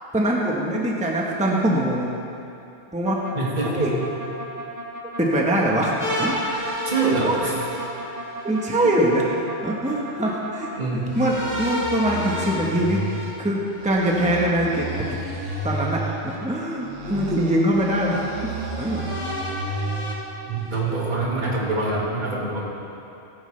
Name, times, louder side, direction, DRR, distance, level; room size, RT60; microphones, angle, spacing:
voice 1, 0.1-2.2 2.9-3.2 3.7-3.9 5.2-6.3 7.2-7.4 7.9-8.0 8.4-13.0 13.4-15.1 15.6-18.5 18.8-19.1, right 1 dB, 5° right, -2 dB, 1.1 m, -23 dB
sound 1, 3.0-10.7 11.0-13.2 13.7-16.2 16.8-20.2, right 2 dB, 75° right, 1.6 m, -32 dB
voice 2, 3.4-3.9 6.9-7.6 10.8-11.2 20.5-22.6, right 3 dB, 40° right, -5 dB, 2.2 m, -25 dB
sound 2, 6.0-8.7 11.1-14.1 15.4-16.4 17.1-17.2 18.8-20.8, left 1 dB, 35° left, 3.4 m, -32 dB
19.0 x 9.1 x 3.3 m, 2.8 s
omnidirectional pair, 1.2 m